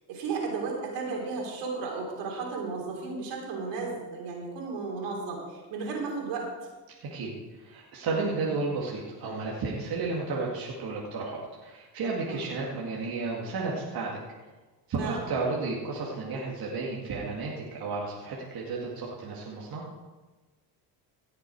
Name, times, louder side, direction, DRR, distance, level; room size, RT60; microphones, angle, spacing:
voice 1, 0.1-6.5 8.5-8.6 12.3-12.5 15.0-15.2, right 4 dB, 75° right, 0 dB, 3.5 m, -34 dB
voice 2, 7.1-14.2 14.9-19.8, right 3 dB, 55° right, -4 dB, 2.2 m, -32 dB
17.0 x 6.7 x 4.7 m, 1.3 s
supercardioid pair, 80°, 43 cm